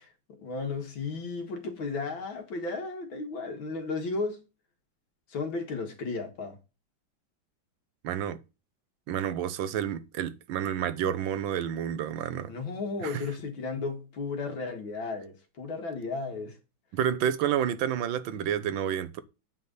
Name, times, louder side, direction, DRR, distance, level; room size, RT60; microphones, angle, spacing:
voice 1, 0.4-4.4 5.3-6.6 12.5-16.6, left 4 dB, 80° left, 2.4 m, -34 dB
voice 2, 8.0-8.4 9.1-12.5 13.0-13.2 16.9-19.2, right 9 dB, 75° right, 1.6 m, -29 dB
9.3 x 3.8 x 6.7 m
omnidirectional pair, 2.1 m